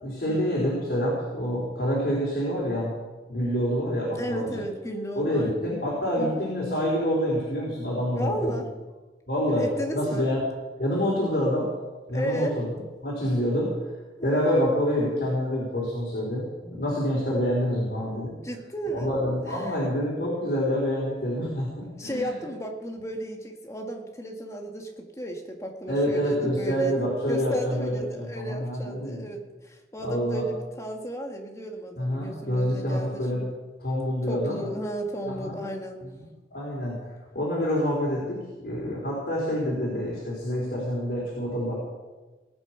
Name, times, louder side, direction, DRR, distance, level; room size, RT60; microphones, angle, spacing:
voice 1, 0.0-2.9 3.3-4.6 5.2-8.3 9.3-9.7 9.9-10.4 10.8-11.7 12.1-13.8 14.2-18.3 18.9-22.4 25.9-29.2 30.0-30.4 32.0-33.5 33.8-34.7 35.2-35.6 36.5-37.0 37.3-41.8, equal, 60° left, -5 dB, 4.1 m, -27 dB
voice 2, 4.2-5.7 6.2-6.5 8.1-8.7 9.4-10.3 12.1-12.6 14.2-14.3 18.4-19.1 19.5-19.8 22.0-33.5 34.3-36.1, right 1 dB, 15° left, 2 dB, 1.8 m, -34 dB
18.5 x 8.8 x 5.9 m, 1.2 s
head